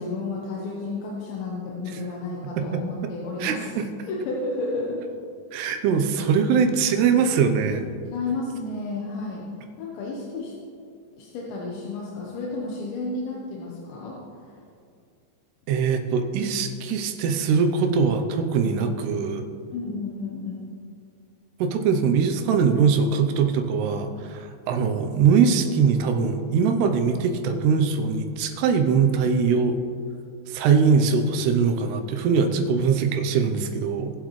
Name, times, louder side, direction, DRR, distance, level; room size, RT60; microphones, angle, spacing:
voice 1, 0.0-3.7 4.1-5.0 8.1-9.5 9.8-10.5 11.2-14.2 14.4-14.6 19.7-20.6, left 3 dB, 90° left, -3 dB, 3.5 m, -32 dB
voice 2, 3.4-3.8 5.5-7.9 15.7-19.4 21.6-29.8 30.5-34.1, right 6 dB, 80° right, 6 dB, 2.7 m, -22 dB
20.0 x 7.6 x 3.2 m, 2.3 s
omnidirectional pair, 5.0 m